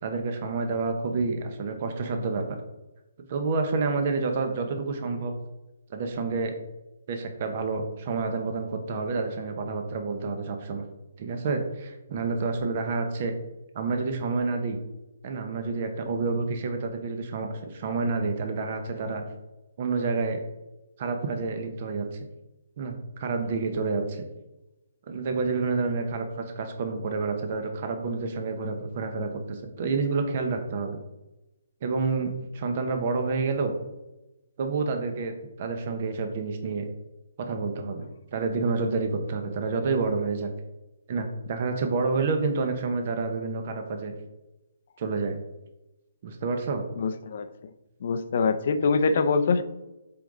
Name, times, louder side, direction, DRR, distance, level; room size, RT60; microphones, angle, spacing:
voice 1, 0.0-2.6 3.3-5.3 5.9-6.5 7.1-10.8 11.2-13.3 13.7-14.8 15.2-19.2 19.8-20.4 21.0-22.3 22.8-24.2 25.1-31.0 31.8-33.7 34.6-36.9 37.4-40.5 41.1-44.1 45.0-45.4 46.2-46.8, right 4 dB, 40° right, 5 dB, 0.9 m, -29 dB
voice 2, 47.0-47.5 48.0-49.6, left 4 dB, 50° left, 10 dB, 0.6 m, -24 dB
8.1 x 3.9 x 3.8 m, 1.0 s
hypercardioid pair, 155°, 0 cm